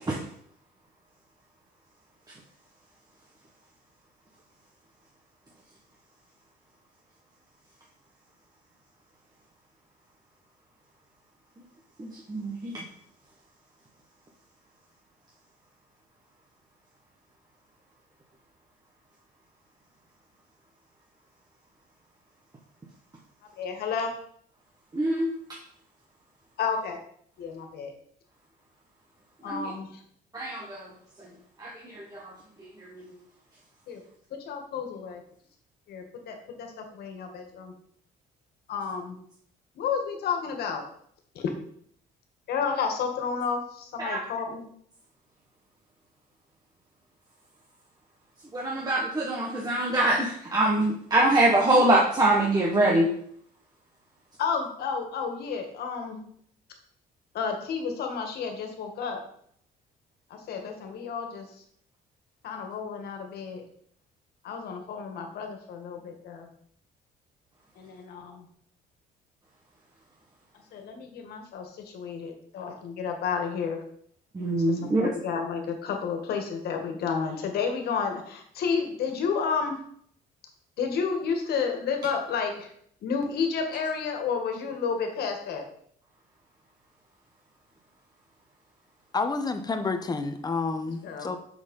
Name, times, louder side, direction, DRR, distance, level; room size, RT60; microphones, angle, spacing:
voice 1, 12.0-12.8 24.9-25.3 29.5-29.7 30.3-30.9 31.6-32.3 32.9-33.1 44.0-44.2 48.5-53.1 74.3-75.1, right 1 dB, 20° right, -2 dB, 1.5 m, -24 dB
voice 2, 23.6-24.1 26.6-27.0 27.4-27.9 29.4-29.9 33.9-34.0 34.3-35.2 35.9-37.7 38.7-39.2 39.8-40.8 41.4-41.5 42.5-44.6 51.7-51.8 54.4-56.2 57.3-59.2 60.3-61.5 62.4-63.6 64.4-66.5 67.8-68.5 70.7-73.8 74.7-79.8 80.8-82.7 83.0-85.7 91.0-91.3, left 6 dB, 70° left, 4 dB, 1.9 m, -31 dB
voice 3, 89.1-91.4, left 4 dB, 25° left, 7 dB, 1.1 m, -29 dB
6.4 x 6.2 x 5.5 m, 0.65 s
cardioid pair, 110°, 17 cm